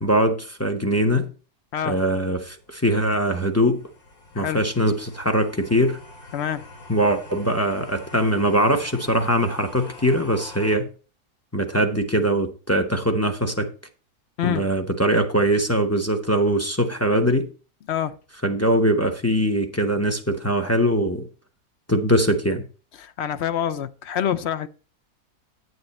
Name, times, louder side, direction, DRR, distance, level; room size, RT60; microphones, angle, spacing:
voice 1, 0.0-1.3 1.8-3.8 4.3-6.0 6.9-10.9 11.5-13.7 14.4-17.5 18.4-21.3 21.9-22.6, equal, 15° left, 0.8 m, -22 dB
sound 1, 2.3-10.8, left 2 dB, 80° left, 2.9 m, -45 dB
voice 2, 6.3-6.7 14.4-14.7 17.9-18.2 23.0-24.7, left 9 dB, 60° left, 0.7 m, -26 dB
9.4 x 9.0 x 3.1 m
omnidirectional pair, 1.5 m